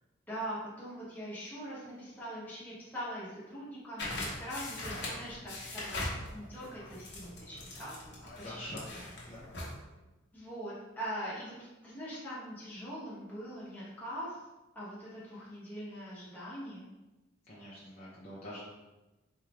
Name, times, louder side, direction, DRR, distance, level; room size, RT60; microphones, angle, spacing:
voice 1, 0.3-8.7 10.3-14.4 14.7-16.9, equal, 10° left, -9 dB, 1.2 m, -42 dB
sound 1, 4.0-9.7, left 1 dB, 55° left, 1.0 m, -41 dB
voice 2, 8.4-8.8 9.3-9.4 17.5-18.6, left 1 dB, 35° left, -8 dB, 0.6 m, -45 dB
4.3 x 3.2 x 2.4 m, 1.1 s
head